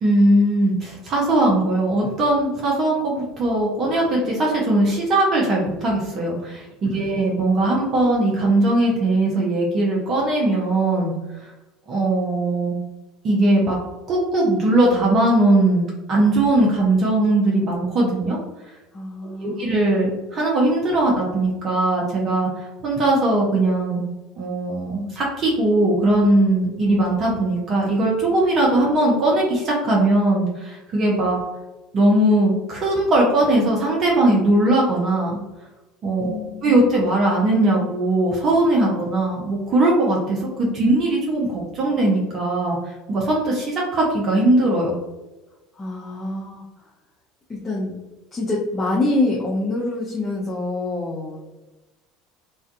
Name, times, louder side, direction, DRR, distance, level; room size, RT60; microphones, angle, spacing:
voice 1, 0.0-11.1 11.4-11.5 11.9-12.8 13.2-13.8 14.1-18.4 19.2-24.0 24.4-31.4 31.9-35.4 36.0-42.8 43.1-45.0, right 1 dB, 40° right, -3 dB, 0.6 m, -20 dB
voice 2, 18.9-19.7 36.2-36.7 45.8-46.6 47.5-47.9 48.3-51.4, left 2 dB, 20° left, -3 dB, 0.5 m, -26 dB
2.5 x 2.3 x 2.4 m, 1.1 s
figure-of-eight pair, 70°, 0 cm